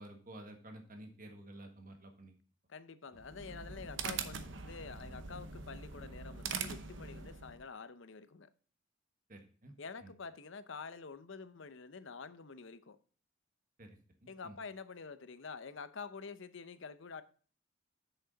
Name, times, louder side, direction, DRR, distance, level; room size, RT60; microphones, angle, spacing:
voice 1, 0.0-2.3 3.1-3.2 9.3-9.7 10.0-10.1 13.8-14.6, right 1 dB, 40° right, 1.5 m, -52 dB
voice 2, 2.7-8.5 9.8-13.0 14.3-17.2, left 5 dB, 65° left, 0.7 m, -48 dB
sound 1, 3.1-7.6, right 5 dB, 60° right, 0.8 m, -43 dB
8.0 x 6.6 x 3.9 m
head